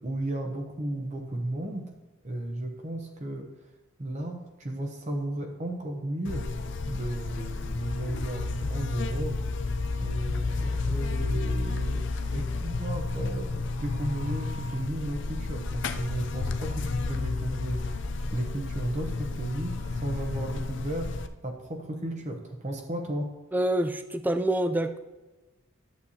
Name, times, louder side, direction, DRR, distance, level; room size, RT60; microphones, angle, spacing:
voice 1, 0.0-1.9 2.2-3.7 4.0-6.5 6.9-9.4 10.0-17.8 18.3-21.1 21.4-23.3, right 1 dB, 35° right, 3 dB, 0.8 m, -34 dB
Buzz, 6.2-21.3, left 3 dB, 55° left, 0.5 m, -31 dB
voice 2, 23.5-25.0, right 1 dB, 10° right, 9 dB, 0.3 m, -26 dB
11.0 x 8.0 x 2.8 m, 1.1 s
head